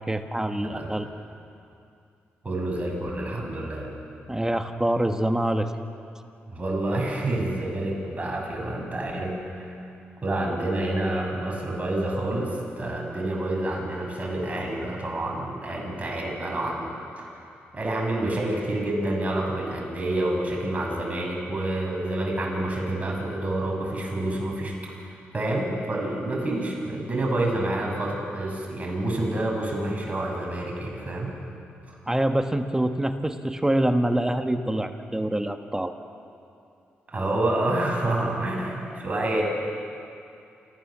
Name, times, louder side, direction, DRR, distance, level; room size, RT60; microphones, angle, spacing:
voice 1, 0.1-1.1 4.3-5.7 32.1-35.9 38.7-39.0, right 1 dB, 10° right, 7 dB, 1.4 m, -25 dB
voice 2, 2.4-4.0 6.5-9.8 10.2-17.4 17.7-31.3 37.1-39.4, right 1 dB, 30° right, 0 dB, 7.2 m, -28 dB
28.0 x 15.5 x 7.4 m, 2.5 s
cardioid pair, 60°, 5 cm